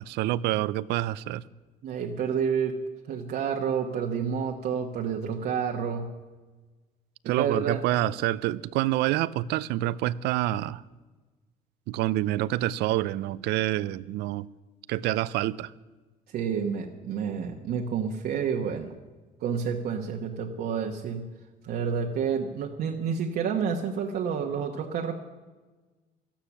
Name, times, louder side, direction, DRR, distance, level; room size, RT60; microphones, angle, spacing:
voice 1, 0.0-1.4 7.2-10.8 11.9-14.5 14.9-15.7, right 15 dB, 85° right, 0.5 m, -27 dB
voice 2, 1.8-2.8 3.1-6.1 7.3-7.8 16.3-18.9 19.4-21.3 21.6-25.1, right 7 dB, 65° right, 1.2 m, -29 dB
13.0 x 11.5 x 7.2 m
cardioid pair, 110°, 17 cm